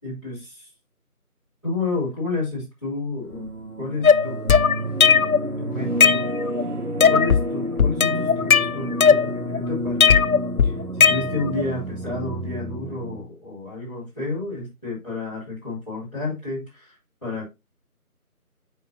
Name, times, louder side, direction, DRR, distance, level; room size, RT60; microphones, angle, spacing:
voice 1, 0.0-0.7 1.6-3.5 3.8-4.6 5.6-6.3 7.1-10.1 10.6-17.0 17.2-17.5, left 3 dB, 20° left, -9 dB, 4.5 m, -31 dB
sound 1, 3.3-13.2, right 1 dB, 90° right, 2.4 m, -30 dB
sound 2, 4.0-5.5 5.8-6.6 7.0-7.5 7.8-9.6 10.0-11.6, left 6 dB, 70° left, 0.5 m, -17 dB
9.7 x 4.8 x 2.8 m, 0.23 s
figure-of-eight pair, 180°, 45 cm